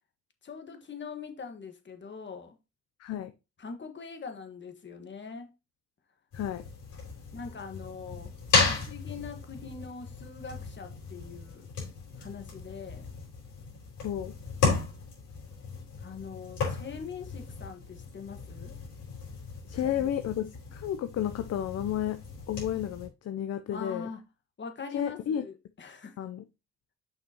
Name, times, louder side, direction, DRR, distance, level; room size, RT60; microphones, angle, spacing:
voice 1, 0.4-2.6 3.6-5.5 7.3-8.3 8.7-11.7 12.2-13.1 16.0-18.7 19.7-20.1 23.7-24.2 24.6-26.2, left 5 dB, 40° left, 1.5 m, -42 dB
voice 2, 3.0-3.3 6.3-6.6 14.0-14.3 19.7-22.2 22.5-24.1 24.9-25.4 26.2-26.4, left 10 dB, 55° left, 0.6 m, -32 dB
sound 1, 6.3-23.1, left 4 dB, 85° left, 4.4 m, -35 dB
6.6 x 5.8 x 2.9 m
cardioid pair, 90°, 30 cm